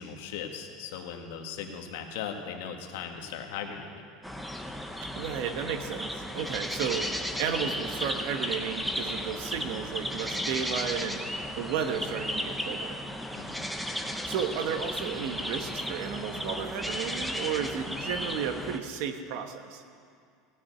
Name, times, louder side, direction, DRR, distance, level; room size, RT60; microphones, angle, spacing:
voice 1, 0.0-4.1 13.4-13.7, left 7 dB, 75° left, 4 dB, 1.5 m, -38 dB
sound 1, 4.2-18.8, equal, ahead, 0.6 m, -34 dB
voice 2, 5.2-7.1 7.4-11.2 11.6-13.0 14.3-19.8, right 8 dB, 55° right, 7 dB, 1.1 m, -33 dB
16.0 x 7.0 x 9.3 m, 2.3 s
cardioid pair, 175°, 0 cm